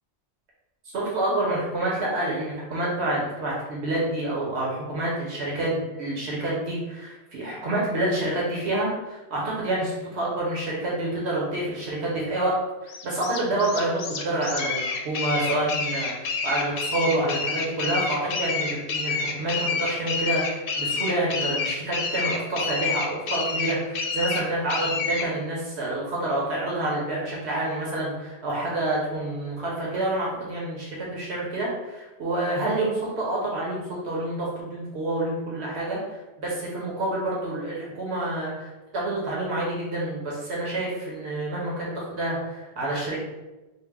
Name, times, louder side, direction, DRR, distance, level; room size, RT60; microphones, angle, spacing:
voice 1, 0.9-12.6 12.8-43.2, right 1 dB, 85° right, -4 dB, 1.3 m, -28 dB
sound 1, 12.9-25.3, left 4 dB, 65° left, 0.7 m, -28 dB
4.9 x 2.1 x 3.6 m, 1.1 s
omnidirectional pair, 1.1 m